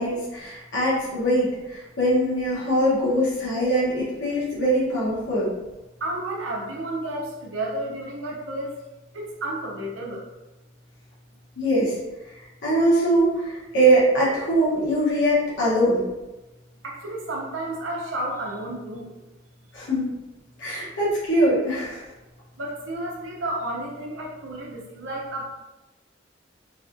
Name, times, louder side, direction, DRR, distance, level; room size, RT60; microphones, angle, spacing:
voice 1, 0.0-5.5 11.6-11.9 12.6-16.0 19.7-20.1 20.6-22.1, right 1 dB, 70° left, -8 dB, 1.1 m, -22 dB
voice 2, 6.0-8.7 9.1-10.2 16.8-19.1 22.6-25.4, right 1 dB, 85° right, -2 dB, 0.7 m, -31 dB
3.2 x 2.4 x 2.5 m, 1.0 s
head